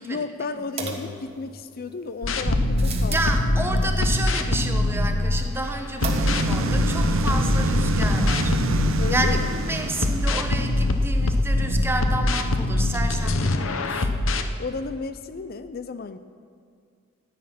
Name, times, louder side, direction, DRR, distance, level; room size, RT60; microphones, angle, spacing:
voice 1, 0.0-3.3 3.7-3.9 7.7-8.0 9.0-9.6 14.6-16.2, left 4 dB, 50° left, 11 dB, 0.4 m, -33 dB
sound 1, 0.8-1.8 2.4-3.4 6.0-6.6 6.9-7.0 7.3-7.4, right 1 dB, 30° right, 1.2 m, -29 dB
sound 2, 2.2-5.6 6.0-9.6 10.0-14.5, left 2 dB, 75° left, 0.8 m, -23 dB
voice 2, 3.1-14.1, right 2 dB, 10° right, 5 dB, 0.9 m, -30 dB
sound 3, 6.0-11.0, right 2 dB, 80° right, 0.8 m, -27 dB
14.0 x 9.6 x 5.9 m, 2.1 s
head